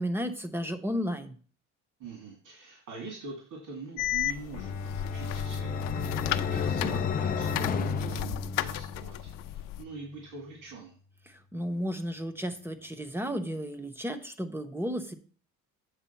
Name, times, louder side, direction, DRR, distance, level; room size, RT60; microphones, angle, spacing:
voice 1, 0.0-1.4 11.3-15.1, equal, 5° right, 8 dB, 0.7 m, -33 dB
voice 2, 2.0-4.7 5.0-5.8 6.4-9.2 9.5-10.9, right 4 dB, 70° right, -1 dB, 2.3 m, -44 dB
sound 1, 4.0-9.8, left 14 dB, 80° left, 0.5 m, -35 dB
Bowed string instrument, 4.5-9.8, left 3 dB, 55° left, 1.0 m, -35 dB
sound 2, 4.5-9.1, left 9 dB, 30° left, 0.4 m, -34 dB
8.3 x 3.6 x 5.7 m, 0.43 s
cardioid pair, 130°, 32 cm